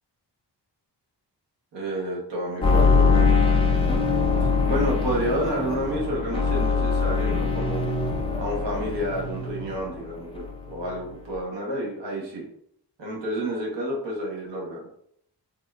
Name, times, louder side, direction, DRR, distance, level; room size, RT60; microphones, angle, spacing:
voice 1, 1.7-3.4 4.7-7.9 8.4-12.5 13.0-14.8, right 1 dB, 80° right, -3 dB, 1.0 m, -30 dB
sound 1, 2.6-10.1 10.3-11.0 11.3-11.4, left 4 dB, 15° left, 0.4 m, -23 dB
3.5 x 2.4 x 2.2 m, 0.69 s
wide cardioid pair, 135°, 43 cm